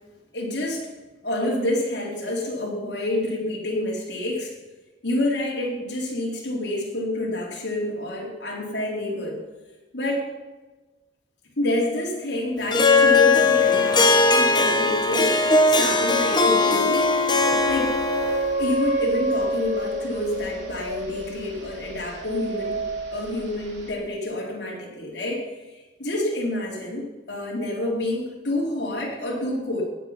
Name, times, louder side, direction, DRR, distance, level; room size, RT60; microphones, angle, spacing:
voice 1, 0.3-0.9 1.2-4.5 5.0-9.4 9.9-10.3 11.6-15.4 15.6-17.1 17.7-18.0 18.6-22.8 23.1-25.5 25.7-29.8, left 1 dB, 70° left, -3 dB, 4.0 m, -28 dB
Harp, 12.7-18.5, left 3 dB, 25° left, 1.2 m, -19 dB
sound 1, 17.4-23.9, right 2 dB, 80° right, 3.2 m, -29 dB
17.5 x 8.0 x 5.8 m, 1.2 s
head